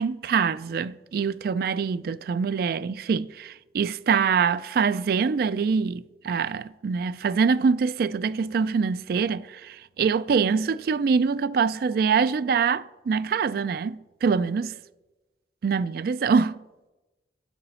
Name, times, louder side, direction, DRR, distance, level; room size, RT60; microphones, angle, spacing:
voice 1, 0.0-14.8 15.6-16.7, right 5 dB, 55° right, 0.3 m, -24 dB
11.5 x 4.0 x 5.6 m
head